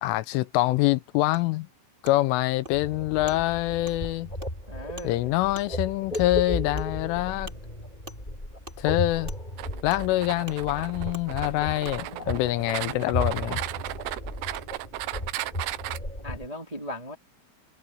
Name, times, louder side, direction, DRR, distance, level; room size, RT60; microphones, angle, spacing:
voice 1, 0.0-1.7 2.0-4.3 5.0-7.5 8.8-9.3 9.8-13.6, left 17 dB, 80° left, 3.1 m, -25 dB
Wood, 1.3-1.4 2.0-2.2 2.6-2.8 3.3-3.4 3.9-4.0 4.4-4.5 5.0-5.1 5.5-5.7 6.1-6.3 6.8-6.9 7.5-7.6 8.1-8.2 8.6-8.8 9.3-9.4 9.9-10.0 10.5-10.6 11.1-11.3 11.8-12.0 13.0-13.1 13.9-14.0 14.5-14.6, right 2 dB, 15° right, 2.6 m, -44 dB
sound 1, 2.7-16.5, left 1 dB, 10° left, 6.2 m, -35 dB
voice 2, 4.7-5.3 11.9-13.1 16.2-17.1, equal, 30° right, 0.6 m, -39 dB
sound 2, 9.6-16.0, right 17 dB, 85° right, 2.5 m, -35 dB
omnidirectional pair, 5.9 m